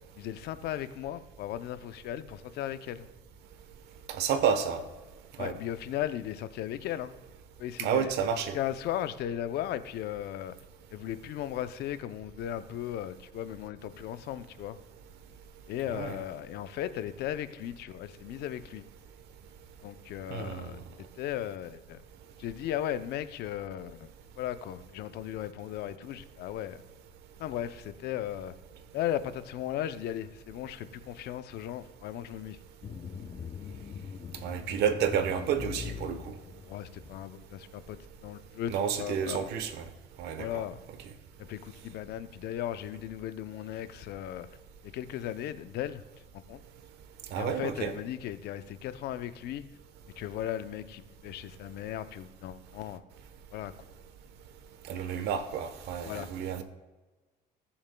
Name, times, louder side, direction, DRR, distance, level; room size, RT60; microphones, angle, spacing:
voice 1, 0.2-3.0 5.4-7.2 7.6-8.1 8.5-10.5 10.9-14.8 15.7-18.8 19.8-22.0 22.4-24.1 24.4-26.8 27.4-28.5 28.9-32.6 36.6-39.5 40.4-40.8 41.4-44.5 44.8-46.0 46.3-46.6 47.3-49.8 50.2-53.0 53.5-53.7 56.0-56.3, left 11 dB, 75° left, 12 dB, 0.6 m, -36 dB
voice 2, 4.1-4.8 5.4-5.5 7.8-8.6 16.0-16.1 20.3-20.8 34.4-36.3 38.7-39.7 40.2-40.5 47.3-47.9 54.8-56.6, right 7 dB, 80° right, 10 dB, 1.0 m, -30 dB
sound 1, 32.8-37.4, left 7 dB, 30° left, 0.5 m, -42 dB
19.5 x 7.1 x 2.2 m, 1.2 s
cardioid pair, 110°, 17 cm